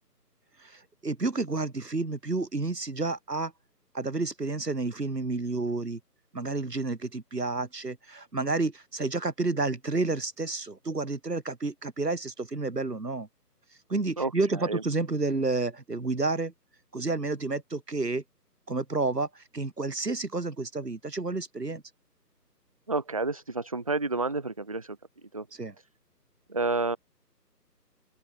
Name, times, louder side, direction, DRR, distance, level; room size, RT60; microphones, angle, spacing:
voice 1, 0.6-3.5 3.9-6.0 6.3-13.3 13.9-16.5 16.9-18.2 18.7-21.8 25.5-25.8, right 3 dB, 70° right, 3.5 m, -30 dB
voice 2, 14.2-14.8 22.9-25.0 25.3-25.5 26.5-27.0, right 3 dB, 20° right, 1.0 m, -30 dB
open air
figure-of-eight pair, 155°, 49 cm